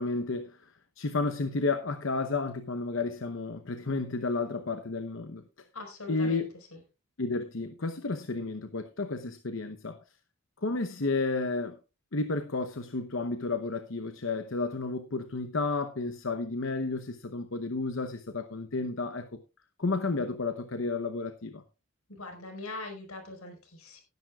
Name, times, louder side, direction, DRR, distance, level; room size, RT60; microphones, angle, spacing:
voice 1, 0.0-5.4 6.1-6.5 7.2-10.0 10.6-11.8 12.1-19.3 19.8-21.6, left 3 dB, 60° left, 0.9 m, -32 dB
voice 2, 5.7-6.4 6.7-6.8 22.1-24.0, left 2 dB, 80° left, 4.9 m, -42 dB
18.5 x 11.0 x 2.4 m
head